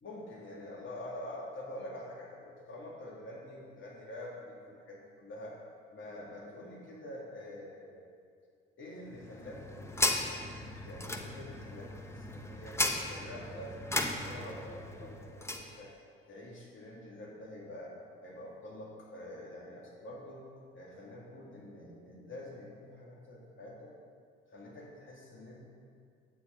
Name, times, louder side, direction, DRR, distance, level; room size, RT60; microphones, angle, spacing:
voice 1, 0.0-5.6 5.9-8.0 8.8-10.4 10.8-12.8 13.1-16.0 16.2-17.9 18.2-20.5 20.7-23.9 24.5-25.7, left 1 dB, 40° left, -3 dB, 2.7 m, -46 dB
sound 1, 9.1-15.7, left 1 dB, 10° left, 1.0 m, -36 dB
9.7 x 8.6 x 4.0 m, 2.2 s
figure-of-eight pair, 50°, 31 cm